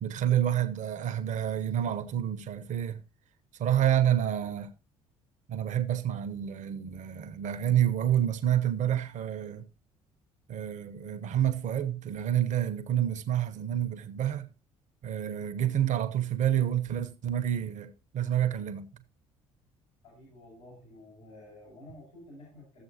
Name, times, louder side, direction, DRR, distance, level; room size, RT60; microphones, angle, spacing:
voice 1, 0.0-3.0 3.6-4.7 5.5-9.6 10.5-14.5 15.0-18.9, right 10 dB, 50° right, 1.0 m, -28 dB
voice 2, 20.0-22.8, left 1 dB, 80° left, 6.8 m, -51 dB
14.0 x 7.7 x 2.8 m
figure-of-eight pair, 50°, 16 cm